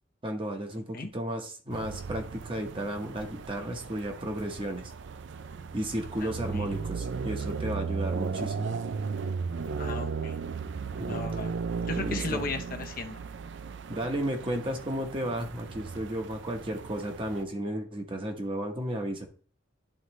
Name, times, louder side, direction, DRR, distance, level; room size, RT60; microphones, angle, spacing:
voice 1, 0.2-4.9 5.7-8.7 11.1-11.2 12.0-12.5 13.9-19.3, right 1 dB, 25° right, 4 dB, 1.0 m, -33 dB
sound 1, 1.7-17.4, right 5 dB, 65° right, 0.4 m, -36 dB
voice 2, 6.2-6.7 9.8-10.4 11.1-11.5 11.8-13.2, left 3 dB, 45° left, 5 dB, 0.7 m, -36 dB
11.0 x 3.9 x 3.1 m, 0.43 s
head